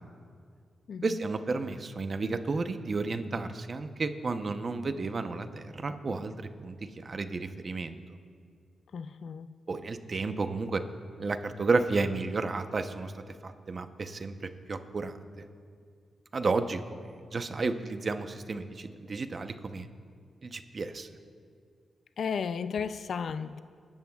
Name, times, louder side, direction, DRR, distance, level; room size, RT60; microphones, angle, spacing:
voice 1, 1.0-8.0 9.7-10.8 11.2-13.1 13.4-14.3 14.7-15.2 16.3-16.8 17.3-19.9 20.4-21.1, right 3 dB, 45° right, 8 dB, 0.8 m, -32 dB
voice 2, 8.9-9.5 22.2-23.6, left 6 dB, 70° left, 12 dB, 0.4 m, -34 dB
25.5 x 13.0 x 2.4 m, 2.2 s
cardioid pair, 75°, 0 cm